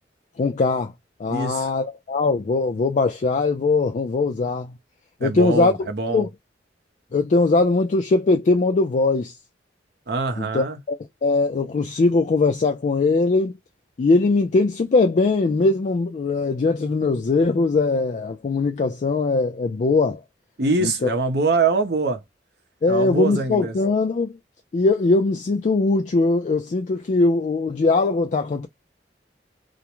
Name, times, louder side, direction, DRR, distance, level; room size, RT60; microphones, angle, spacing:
voice 1, 0.4-0.9 1.2-4.7 5.2-5.9 6.1-6.3 7.1-9.3 10.4-11.0 11.2-13.6 14.0-20.2 20.8-21.1 22.8-24.3 24.7-28.7, left 3 dB, 40° left, 0.3 m, -21 dB
voice 2, 1.3-1.7 5.2-6.3 10.1-10.8 20.6-22.2 22.9-23.7, right 3 dB, 65° right, 0.6 m, -23 dB
2.4 x 2.1 x 2.9 m
head